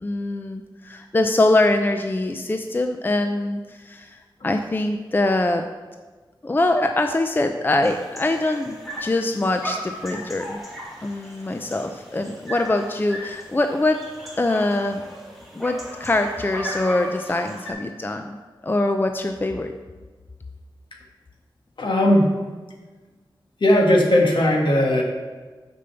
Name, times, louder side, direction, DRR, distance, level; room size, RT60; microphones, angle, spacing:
voice 1, 0.0-4.1 4.4-5.6 6.4-10.6 11.0-14.0 14.4-15.0 15.5-18.4 18.6-19.7, left 2 dB, 25° left, 6 dB, 0.4 m, -23 dB
sound 1, 7.8-17.7, equal, ahead, 2.1 m, -37 dB
voice 2, 21.8-22.3 23.6-25.0, left 1 dB, 70° left, 0 dB, 1.5 m, -17 dB
6.7 x 5.4 x 6.8 m, 1.3 s
wide cardioid pair, 95°, 9 cm